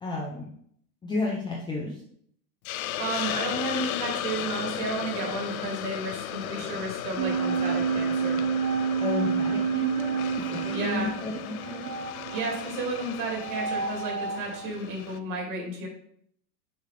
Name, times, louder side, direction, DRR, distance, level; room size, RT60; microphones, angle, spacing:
voice 1, 0.0-0.5 1.0-2.0 9.0-11.9, left 3 dB, 10° left, -3 dB, 0.6 m, -32 dB
Hiss, 2.6-15.2, left 12 dB, 60° left, 0.6 m, -36 dB
voice 2, 3.0-8.4 10.7-11.1 12.3-15.9, right 2 dB, 40° right, 0 dB, 2.4 m, -32 dB
sound 1, 7.2-14.7, right 6 dB, 65° right, 0.8 m, -29 dB
6.7 x 4.8 x 3.3 m, 0.66 s
hypercardioid pair, 125°, 50 cm